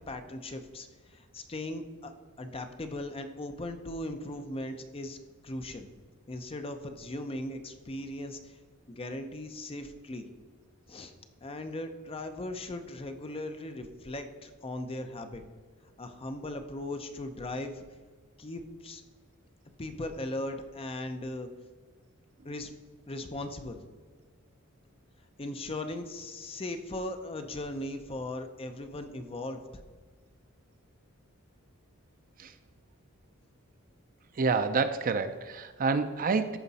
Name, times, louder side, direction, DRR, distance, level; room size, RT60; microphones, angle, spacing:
voice 1, 0.1-2.1 2.4-5.2 5.4-5.9 6.3-8.6 8.9-10.3 10.9-11.1 11.4-15.4 16.0-17.8 18.4-19.0 19.8-21.5 22.4-22.7 23.1-23.8 25.4-29.6, left 1 dB, 25° left, 7 dB, 0.6 m, -38 dB
voice 2, 34.4-36.6, right 4 dB, 40° right, 10 dB, 0.4 m, -28 dB
14.0 x 5.1 x 4.1 m, 1.5 s
head